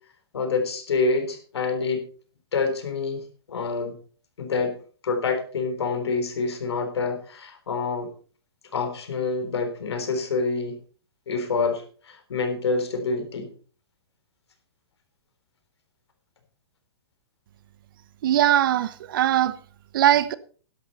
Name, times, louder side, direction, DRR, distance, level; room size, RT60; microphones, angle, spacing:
voice 1, 0.3-2.1 2.5-4.0 4.4-8.1 8.7-10.8 11.3-13.5, left 4 dB, 85° left, 3.9 m, -27 dB
voice 2, 18.2-19.6 19.9-20.4, right 11 dB, 55° right, 1.0 m, -20 dB
12.0 x 11.5 x 4.2 m
hypercardioid pair, 150°, 13 cm